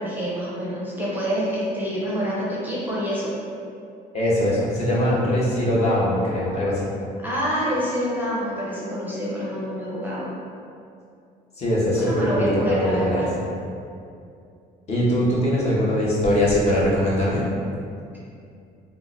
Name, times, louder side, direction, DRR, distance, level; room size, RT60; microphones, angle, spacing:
voice 1, 0.0-3.3 7.2-10.3 12.0-13.2, equal, 10° right, -7 dB, 0.6 m, -27 dB
voice 2, 4.1-6.9 11.6-13.3 14.9-17.5, equal, 40° left, -6 dB, 0.8 m, -21 dB
3.6 x 2.1 x 2.5 m, 2.5 s
cardioid pair, 110°, 17 cm